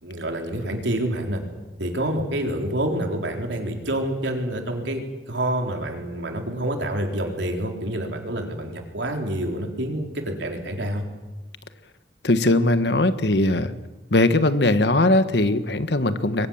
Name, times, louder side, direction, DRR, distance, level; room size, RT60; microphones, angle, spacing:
voice 1, 0.0-1.4 1.8-11.1, right 1 dB, 90° right, 3 dB, 4.2 m, -27 dB
voice 2, 12.2-13.7 14.1-16.5, left 2 dB, 75° left, 11 dB, 1.4 m, -20 dB
26.5 x 23.0 x 7.4 m, 1.1 s
head